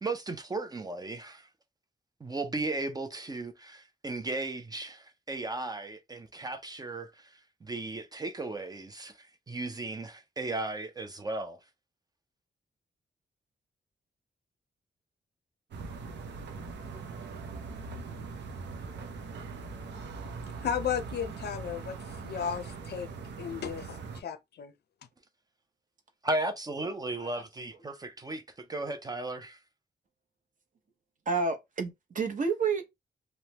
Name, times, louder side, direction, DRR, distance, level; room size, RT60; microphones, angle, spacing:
voice 1, 0.0-1.4 2.2-7.1 7.6-9.1 9.5-11.6 26.2-28.4 28.7-29.6, right 2 dB, 20° right, 0.4 m, -35 dB
sound 1, 15.7-24.2, right 4 dB, 80° right, 0.6 m, -41 dB
voice 2, 20.6-23.1 23.4-24.7, left 8 dB, 65° left, 0.5 m, -34 dB
voice 3, 31.3-32.9, right 4 dB, 45° right, 0.7 m, -30 dB
3.1 x 2.1 x 2.8 m
wide cardioid pair, 140°, 18 cm